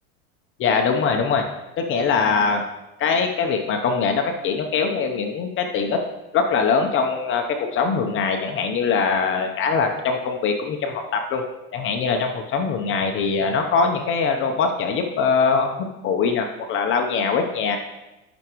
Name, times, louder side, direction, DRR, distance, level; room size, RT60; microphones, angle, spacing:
voice 1, 0.6-1.5 1.8-2.6 3.0-6.0 6.3-11.4 11.7-17.8, left 5 dB, 35° left, 4 dB, 0.8 m, -22 dB
12.5 x 6.1 x 3.1 m, 0.98 s
supercardioid pair, 125°, 35 cm